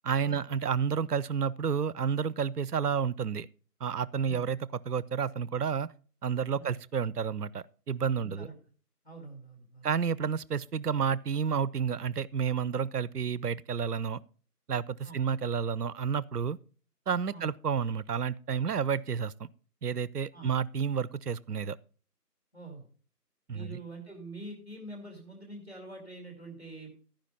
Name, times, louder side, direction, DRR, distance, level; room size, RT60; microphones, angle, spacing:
voice 1, 0.0-3.5 3.8-4.6 4.9-5.9 6.2-8.5 9.8-14.2 14.7-16.6 17.1-19.5 19.8-21.8 23.5-23.8, right 7 dB, 70° right, 0.5 m, -30 dB
voice 2, 8.2-8.6 9.0-9.9 15.0-15.2 17.3-17.5 20.3-20.6 22.5-22.9 23.5-26.9, right 2 dB, 40° left, 2.4 m, -45 dB
13.5 x 5.1 x 5.4 m
figure-of-eight pair, 180°, 49 cm